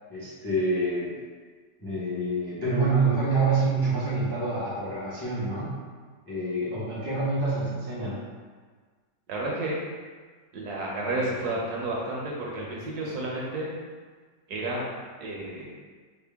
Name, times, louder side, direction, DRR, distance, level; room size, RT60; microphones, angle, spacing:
voice 1, 0.1-1.1 1.8-5.7 6.3-8.1, right 3 dB, 20° left, -9 dB, 0.5 m, -27 dB
voice 2, 9.3-9.8 10.5-13.7 14.5-14.9 15.2-15.7, right 2 dB, 70° right, -3 dB, 1.1 m, -31 dB
4.3 x 2.1 x 3.4 m, 1.5 s
omnidirectional pair, 1.9 m